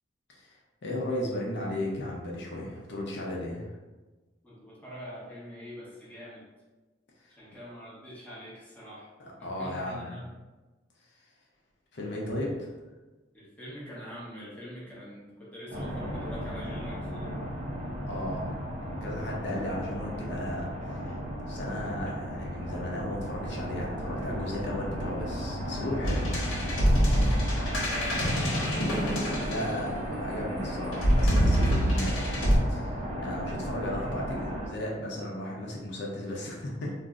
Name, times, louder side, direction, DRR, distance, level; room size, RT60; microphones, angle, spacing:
voice 1, 0.3-3.7 9.2-10.1 11.9-12.7 18.1-18.6 19.0-21.1 21.5-26.3 29.5-36.9, left 1 dB, 60° left, -2 dB, 0.5 m, -35 dB
voice 2, 4.4-6.4 7.3-9.1 9.4-10.3 13.3-17.4 27.8-29.8, equal, 10° left, -7 dB, 0.7 m, -43 dB
sound 1, 15.7-34.7, equal, 35° right, 0.5 m, -35 dB
sound 2, 26.0-30.1 30.9-32.6, equal, 80° left, 0.8 m, -25 dB
2.5 x 2.0 x 3.5 m, 1.2 s
head